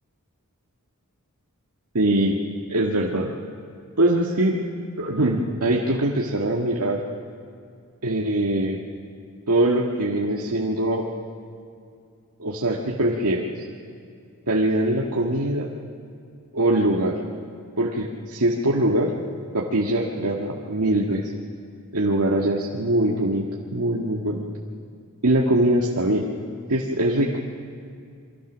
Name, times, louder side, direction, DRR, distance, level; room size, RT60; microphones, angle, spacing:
voice 1, 1.9-2.4 2.7-3.3 4.0-4.6 5.0-7.0 8.0-8.8 9.5-11.1 12.4-13.6 14.5-15.7 16.5-17.2 17.8-19.1 19.5-21.3 21.9-23.5 23.7-24.5 25.2-26.3 26.7-27.3, right 1 dB, 85° right, -2 dB, 1.7 m, -22 dB
28.0 x 23.5 x 6.3 m, 2.3 s
head